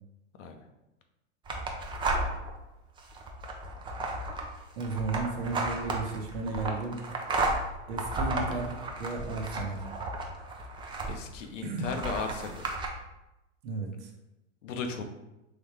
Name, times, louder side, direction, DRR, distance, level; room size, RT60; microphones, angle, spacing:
sound 1, 1.5-2.5 3.0-11.4 11.8-12.9, right 2 dB, 15° right, 0.4 m, -33 dB
voice 1, 4.8-7.1 7.9-8.7 9.0-9.8 11.6-11.9 13.6-14.1, right 3 dB, 60° right, 2 dB, 1.0 m, -34 dB
voice 2, 11.1-12.8 14.6-15.0, left 5 dB, 80° left, 5 dB, 0.7 m, -36 dB
3.8 x 3.3 x 3.3 m, 0.95 s
hypercardioid pair, 105°, 37 cm